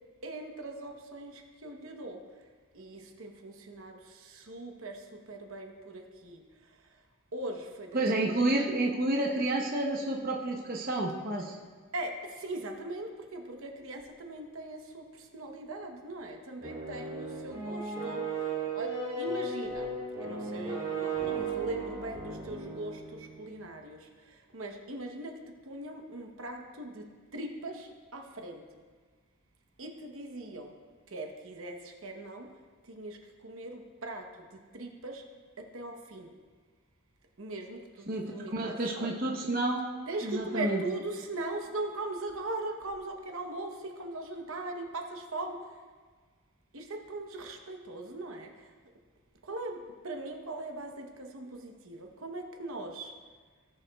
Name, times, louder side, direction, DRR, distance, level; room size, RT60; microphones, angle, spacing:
voice 1, 0.2-2.2 2.7-5.0 5.3-6.4 7.3-8.3 11.9-18.3 18.7-19.9 20.2-24.0 24.5-25.4 25.7-27.1 27.3-28.6 29.8-30.7 31.1-32.5 32.9-33.2 33.4-34.2 34.7-35.2 35.6-36.3 37.4-37.8 38.1-39.1 40.1-45.6 46.7-48.5 49.4-53.1, right 2 dB, 70° right, 3 dB, 1.0 m, -40 dB
voice 2, 7.9-11.5 38.1-39.8 40.2-40.8, right 2 dB, 40° right, -1 dB, 0.8 m, -30 dB
sound 1, 16.6-23.6, right 4 dB, 20° right, 2.8 m, -36 dB
17.5 x 6.9 x 2.3 m, 1.5 s
head